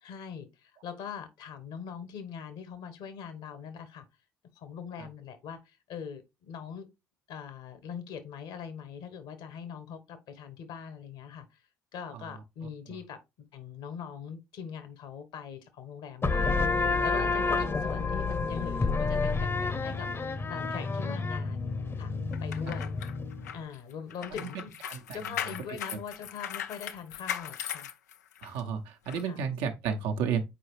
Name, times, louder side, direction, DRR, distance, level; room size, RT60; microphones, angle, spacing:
voice 1, 0.0-4.0 4.5-6.9 7.3-11.6 11.9-13.2 13.5-22.1 22.4-22.9 23.5-24.7 25.1-27.9 29.2-29.4, left 7 dB, 65° left, 1.3 m, -42 dB
sound 1, 16.2-23.5, left 4 dB, 30° left, 0.9 m, -29 dB
sound 2, 22.3-28.6 29.1-29.2, left 9 dB, 85° left, 0.4 m, -38 dB
voice 2, 24.3-25.8 28.4-30.4, right 7 dB, 70° right, 1.0 m, -33 dB
6.7 x 4.7 x 3.2 m
hypercardioid pair, 50°, 9 cm